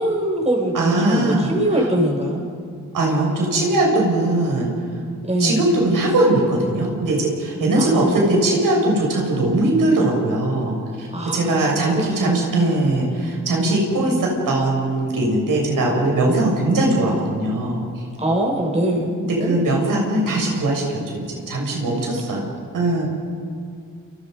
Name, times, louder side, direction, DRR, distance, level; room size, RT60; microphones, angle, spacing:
voice 1, 0.0-2.4 5.2-5.6 7.7-8.3 11.1-12.7 13.5-13.8 18.2-19.8, right 1 dB, 20° right, 0 dB, 6.2 m, -23 dB
voice 2, 0.7-1.5 2.9-4.7 5.4-17.8 19.2-22.5 22.7-23.0, right 2 dB, 90° right, -1 dB, 6.7 m, -20 dB
29.0 x 28.0 x 5.3 m, 2.3 s
cardioid pair, 70°, 32 cm